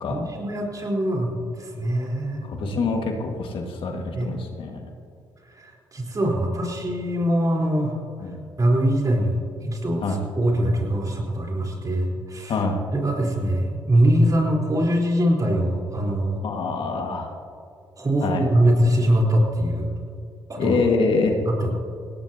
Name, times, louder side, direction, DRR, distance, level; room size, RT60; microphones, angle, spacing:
voice 1, 0.1-2.5 4.1-4.4 5.5-7.9 8.6-12.6 12.9-16.4 18.0-19.9 20.5-20.8 21.5-21.7, right 1 dB, 35° right, -1 dB, 4.0 m, -23 dB
voice 2, 2.4-4.8 8.2-8.4 10.0-10.2 12.5-12.8 16.4-17.3 18.2-18.4 20.6-21.4, left 4 dB, 65° left, 2 dB, 1.8 m, -25 dB
19.5 x 17.0 x 2.9 m, 2.3 s
hypercardioid pair, 50°, 10 cm